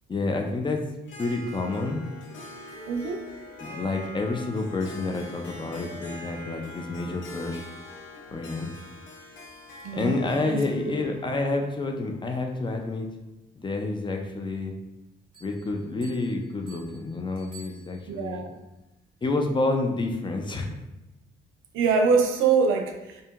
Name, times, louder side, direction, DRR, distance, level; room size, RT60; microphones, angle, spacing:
voice 1, 0.1-0.8 1.2-2.0 3.6-7.7 8.3-8.7 9.9-13.1 13.6-14.7 15.4-18.4 19.2-20.7, left 2 dB, 25° left, 3 dB, 0.4 m, -29 dB
Harp, 1.0-12.9, left 1 dB, 75° left, 0.6 m, -45 dB
Wind instrument woodwind instrument, 1.3-4.9 5.2-9.1, left 1 dB, 90° left, 1.0 m, -48 dB
voice 2, 2.9-3.3 9.8-10.2 10.4-10.9 18.1-18.5 21.7-23.2, right 5 dB, 85° right, 4 dB, 0.5 m, -24 dB
sound 1, 15.3-18.4, right 5 dB, 25° right, 1.4 m, -52 dB
2.7 x 2.6 x 2.3 m, 0.95 s
cardioid pair, 90°, 20 cm